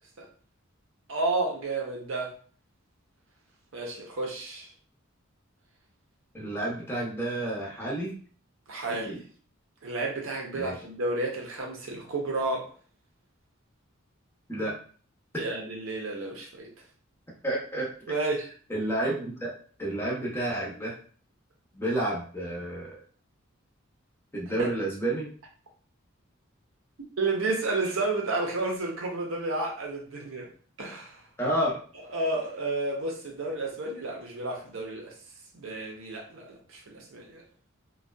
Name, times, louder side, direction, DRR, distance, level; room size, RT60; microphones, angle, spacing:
voice 1, 1.1-2.3 3.7-4.7 8.7-9.3 9.8-12.6 15.4-16.7 18.1-18.5 24.6-24.7 27.2-30.5 30.8-31.2 32.1-35.1 35.5-37.4, right 2 dB, 65° right, 0 dB, 0.7 m, -31 dB
voice 2, 6.3-8.2 8.9-9.2 10.5-10.8 14.5-14.8 17.4-18.2 18.7-19.5 19.8-20.9 21.7-23.0 24.3-25.3 31.4-31.8, right 1 dB, 10° left, -4 dB, 0.6 m, -30 dB
2.6 x 2.2 x 2.2 m, 0.43 s
head